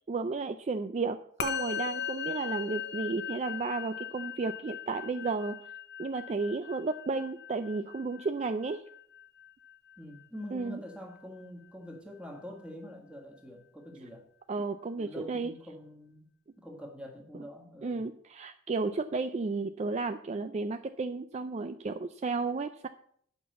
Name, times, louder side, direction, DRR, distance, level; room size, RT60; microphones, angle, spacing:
voice 1, 0.0-5.6 6.0-8.8 10.5-10.8 14.5-15.5 17.3-17.4 17.8-22.9, right 3 dB, 35° right, 9 dB, 0.3 m, -33 dB
Musical instrument, 1.4-10.9, left 8 dB, 55° left, 0.8 m, -39 dB
voice 2, 10.0-14.2 15.0-16.3 16.6-18.0, left 1 dB, 5° right, 1 dB, 1.6 m, -45 dB
8.6 x 5.9 x 7.0 m, 0.66 s
head